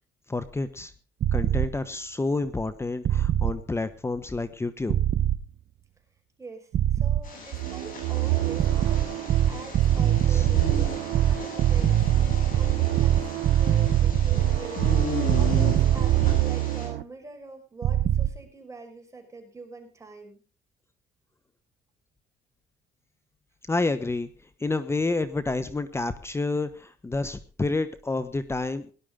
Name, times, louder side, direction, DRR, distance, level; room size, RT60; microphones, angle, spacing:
voice 1, 0.3-0.9 1.3-5.0 10.3-10.5 23.7-24.3 24.6-28.9, left 3 dB, 15° left, 13 dB, 1.1 m, -29 dB
sound 1, 1.2-1.7 3.1-3.5 4.9-5.4 6.7-7.2 8.6-16.5 17.8-18.3, right 11 dB, 55° right, 1.0 m, -22 dB
voice 2, 6.4-11.0 11.2-15.0 15.3-20.4, right 3 dB, 15° right, 3 dB, 5.0 m, -44 dB
sound 2, 7.2-16.9, left 5 dB, 55° left, 8.0 m, -38 dB
sound 3, 7.5-17.0, right 19 dB, 80° right, 0.7 m, -30 dB
18.0 x 11.5 x 3.7 m, 0.37 s
cardioid pair, 110°, 17 cm